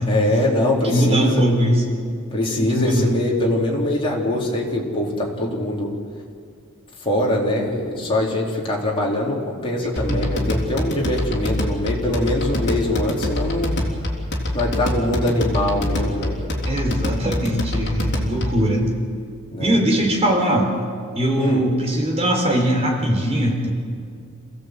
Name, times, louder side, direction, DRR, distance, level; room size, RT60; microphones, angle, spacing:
voice 1, 0.1-1.4 2.3-5.9 7.0-13.8 14.5-16.5 19.5-19.8 21.4-21.6, left 1 dB, 25° left, -3 dB, 4.2 m, -23 dB
voice 2, 0.8-1.8 2.6-3.1 10.1-10.6 16.6-18.9 19.6-20.7 21.1-23.7, right 1 dB, 30° right, 1 dB, 4.4 m, -21 dB
sound 1, 10.0-18.7, left 1 dB, 50° left, 3.4 m, -25 dB
27.5 x 16.5 x 8.1 m, 2.2 s
head